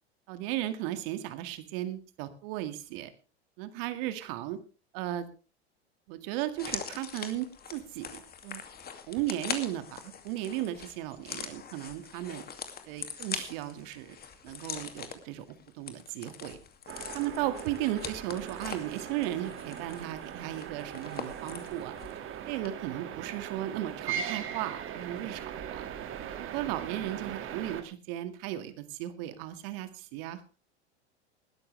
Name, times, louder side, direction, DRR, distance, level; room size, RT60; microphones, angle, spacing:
voice 1, 0.3-3.1 3.6-4.6 4.9-5.3 6.1-8.6 9.1-12.4 12.9-14.2 14.4-15.5 15.7-16.6 17.1-21.9 22.5-25.9 26.5-30.6, right 13 dB, 55° right, 11 dB, 2.1 m, -36 dB
sound 1, 6.5-22.2 22.5-22.7, left 7 dB, 30° left, 2.5 m, -42 dB
sound 2, 16.9-27.8, right 9 dB, 40° right, 2.2 m, -40 dB
20.0 x 12.5 x 3.3 m, 0.33 s
hypercardioid pair, 90°, 33 cm